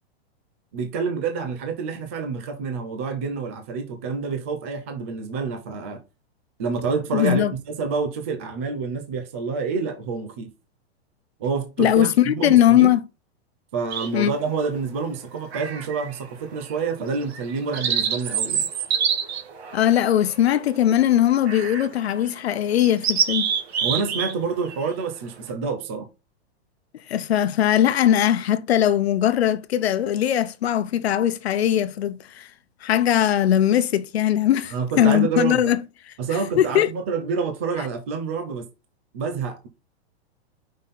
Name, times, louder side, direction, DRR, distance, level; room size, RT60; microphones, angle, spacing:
voice 1, 0.7-6.0 6.6-10.5 11.4-12.9 13.7-18.7 23.8-26.1 34.7-35.7 36.2-38.7 39.1-39.7, right 5 dB, 15° right, 0.4 m, -28 dB
voice 2, 7.1-7.5 11.8-13.0 14.1-14.3 19.7-23.5 27.1-32.5 32.8-36.1 36.6-36.9, left 11 dB, 70° left, 0.9 m, -20 dB
sound 1, 13.9-14.4 15.5-16.2 16.6-16.7 17.3-20.8 21.5-21.9 22.3-22.4 22.8-24.3 24.6-24.9, right 7 dB, 70° right, 2.3 m, -26 dB
5.5 x 5.3 x 4.1 m
supercardioid pair, 180°, 32 cm